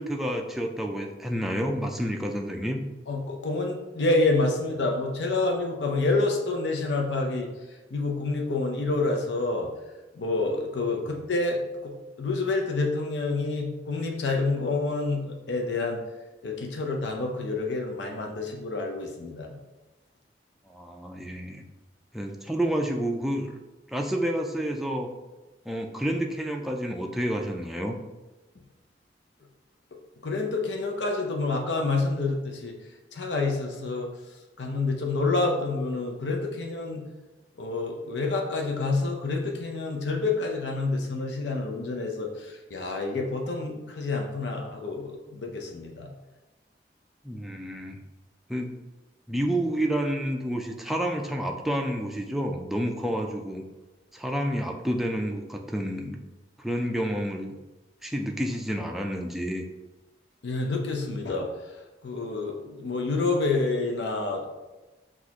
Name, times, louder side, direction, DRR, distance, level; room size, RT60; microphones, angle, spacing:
voice 1, 0.0-2.8 11.1-11.2 20.7-21.6 22.1-23.6 23.9-25.1 25.7-28.0 47.2-48.0 48.5-48.7 49.3-53.7 54.1-56.2 56.6-57.5 58.0-59.6, equal, ahead, 1 dB, 0.3 m, -29 dB
voice 2, 3.1-7.5 7.9-9.7 10.1-11.9 12.2-16.0 16.4-19.5 30.2-32.7 33.1-34.1 34.6-37.0 37.6-46.1 60.4-61.5 62.0-64.4, left 3 dB, 75° left, 1 dB, 0.6 m, -28 dB
6.1 x 2.4 x 2.9 m, 1.1 s
head